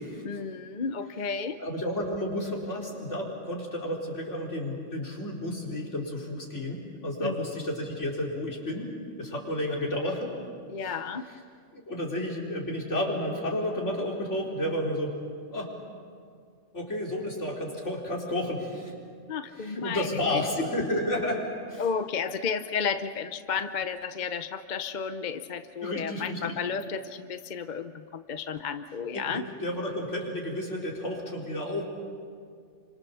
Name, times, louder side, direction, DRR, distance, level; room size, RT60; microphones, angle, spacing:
voice 1, 0.2-1.6 7.2-7.3 10.7-11.2 19.3-20.1 20.3-20.4 21.8-29.4, left 6 dB, 45° left, 10 dB, 0.8 m, -32 dB
voice 2, 1.6-8.9 9.2-10.3 10.8-10.9 11.7-15.2 15.5-15.7 16.7-18.9 19.6-21.9 25.8-26.6 29.1-31.8, left 1 dB, 75° left, -2 dB, 4.7 m, -31 dB
29.0 x 25.5 x 7.0 m, 2.2 s
omnidirectional pair, 1.2 m